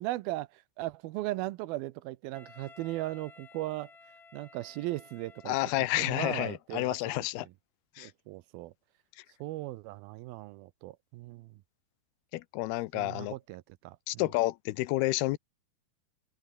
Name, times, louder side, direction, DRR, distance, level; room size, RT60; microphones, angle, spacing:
voice 1, 0.0-3.9 4.3-7.5 8.0-8.7 9.4-11.6 12.9-14.0, right 17 dB, 80° right, 2.4 m, -38 dB
Wind instrument woodwind instrument, 2.3-6.2, left 4 dB, 35° left, 1.0 m, -55 dB
voice 2, 5.5-7.5 8.0-8.1 12.3-13.3 14.1-15.4, left 18 dB, 85° left, 2.7 m, -30 dB
omnidirectional pair, 4.5 m